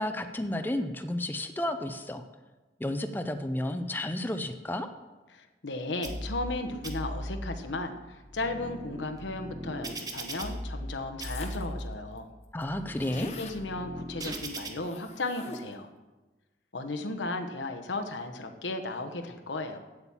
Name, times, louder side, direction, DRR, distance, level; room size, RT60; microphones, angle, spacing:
voice 1, 0.0-2.2 2.8-4.9 12.5-13.3, left 1 dB, 10° left, 7 dB, 0.5 m, -32 dB
voice 2, 5.3-12.3 13.1-15.9 16.7-19.8, left 2 dB, 90° left, 5 dB, 1.1 m, -35 dB
sound 1, 6.0-6.6 6.8-7.6 8.1-10.9 11.2-11.9 12.5-14.7, equal, 20° right, 1.1 m, -38 dB
sound 2, 11.2-11.8 12.2-12.3 12.4-13.6 14.8-15.9, left 4 dB, 35° left, 1.0 m, -46 dB
8.9 x 8.0 x 7.3 m, 1.2 s
head